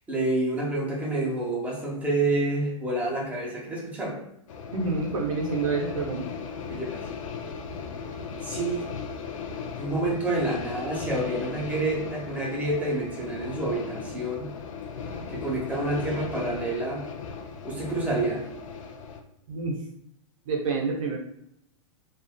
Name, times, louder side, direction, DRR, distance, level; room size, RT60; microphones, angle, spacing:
voice 1, 0.1-4.2 6.7-7.0 8.4-8.8 9.8-14.5 15.3-17.0 17.6-18.4, right 2 dB, 10° right, -4 dB, 0.9 m, -28 dB
sound 1, 4.5-19.2, left 5 dB, 70° left, 0.4 m, -37 dB
voice 2, 4.7-6.3 19.5-19.8 20.5-21.2, right 4 dB, 75° right, -1 dB, 0.6 m, -28 dB
2.5 x 2.4 x 2.2 m, 0.78 s
hypercardioid pair, 110°, 18 cm